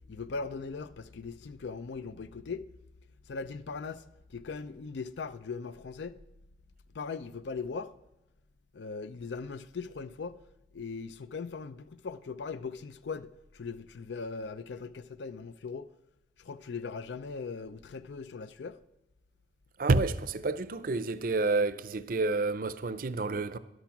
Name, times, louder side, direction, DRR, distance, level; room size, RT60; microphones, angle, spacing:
voice 1, 0.1-2.7 3.3-6.2 6.9-7.9 8.7-10.4 10.7-15.9 16.4-18.8, left 4 dB, 75° left, 0.5 m, -39 dB
voice 2, 19.8-23.6, right 3 dB, 50° right, 0.5 m, -29 dB
12.0 x 11.5 x 5.9 m
head